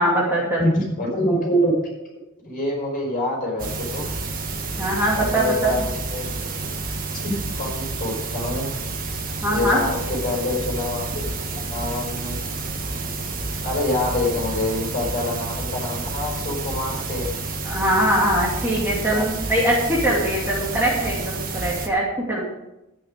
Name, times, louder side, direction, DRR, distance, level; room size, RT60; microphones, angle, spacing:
voice 1, 0.0-0.6 4.8-5.7 9.4-9.8 17.6-22.0 22.3-22.4, right 1 dB, 10° right, -5 dB, 2.5 m, -22 dB
voice 2, 0.6-1.8 2.4-4.1 5.2-6.3 7.2-8.7 9.5-11.2 11.5-12.6 13.6-17.4 19.1-19.3, left 1 dB, 40° left, -2 dB, 5.2 m, -26 dB
sound 1, 3.6-21.9, right 3 dB, 40° right, 1.4 m, -29 dB
12.5 x 9.2 x 5.2 m, 0.93 s
head